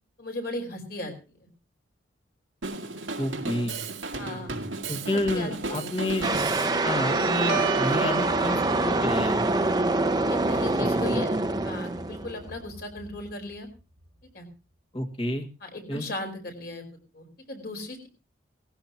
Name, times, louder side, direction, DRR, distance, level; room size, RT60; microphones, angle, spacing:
voice 1, 0.2-1.1 1.4-1.5 4.2-4.5 5.0-5.8 10.3-11.3 11.6-13.7 14.3-14.5 15.6-16.8 17.1-18.1, left 1 dB, 55° left, 3 dB, 4.9 m, -37 dB
Drum kit, 2.6-6.8, right 3 dB, 90° right, 2.0 m, -34 dB
voice 2, 3.2-3.9 4.9-6.3 6.8-9.5 11.1-11.2 14.9-15.5 15.9-16.1, left 1 dB, 30° left, 4 dB, 1.9 m, -30 dB
sound 1, 6.2-12.5, right 2 dB, 20° right, 0.9 m, -25 dB
Guitar, 6.7-13.7, right 5 dB, 60° right, 1.5 m, -35 dB
19.0 x 15.5 x 2.9 m, 0.32 s
head